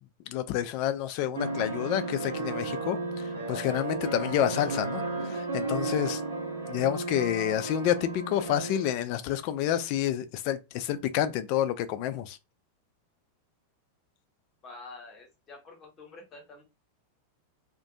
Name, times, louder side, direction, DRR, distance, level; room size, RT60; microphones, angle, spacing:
voice 1, 0.3-6.2 6.7-12.4, left 11 dB, 45° left, 0.3 m, -29 dB
sound 1, 1.3-8.9, right 3 dB, 65° right, 0.7 m, -33 dB
voice 2, 14.6-16.6, left 3 dB, 25° left, 0.9 m, -47 dB
2.4 x 2.2 x 2.6 m
figure-of-eight pair, 90°, 0 cm